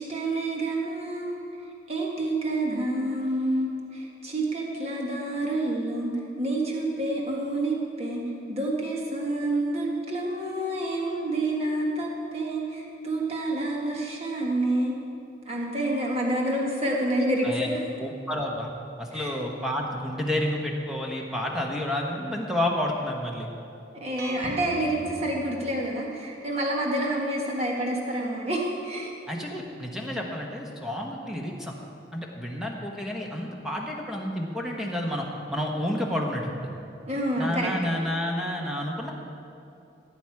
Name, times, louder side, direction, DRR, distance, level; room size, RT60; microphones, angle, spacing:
voice 1, 0.0-1.4 1.9-6.1 6.4-8.2 8.5-15.0 15.4-17.8 19.1-19.3 23.9-29.1 37.0-37.7, right 1 dB, 30° right, -2 dB, 1.6 m, -28 dB
voice 2, 18.0-18.7 19.0-23.5 29.3-31.7 32.1-36.7 37.4-39.1, left 1 dB, ahead, -1 dB, 1.2 m, -30 dB
sound 1, 24.2-26.2, right 1 dB, 50° right, 1.2 m, -40 dB
16.5 x 9.0 x 4.8 m, 2.6 s
head